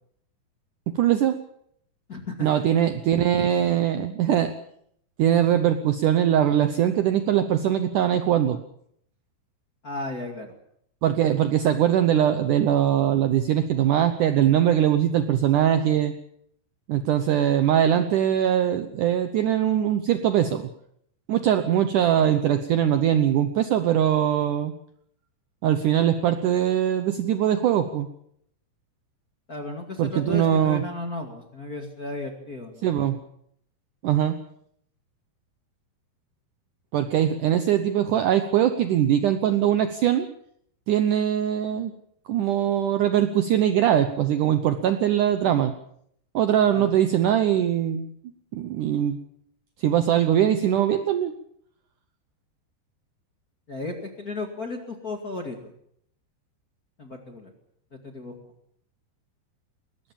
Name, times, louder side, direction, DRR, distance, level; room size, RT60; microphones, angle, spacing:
voice 1, 0.9-1.4 2.4-4.5 5.2-8.6 11.0-16.1 16.9-20.7 21.3-24.7 25.6-28.1 30.0-30.8 32.8-33.2 34.0-34.4 36.9-40.3 40.9-41.9 42.3-45.7 46.3-48.1 48.5-49.2 49.8-51.3, right 10 dB, 70° right, 9 dB, 2.0 m, -21 dB
voice 2, 2.1-2.6 9.8-10.5 29.5-32.9 46.7-46.9 53.7-55.7 57.0-57.5 58.0-58.3, left 2 dB, 30° left, 3 dB, 1.9 m, -34 dB
21.0 x 19.0 x 7.2 m, 0.70 s
omnidirectional pair, 4.7 m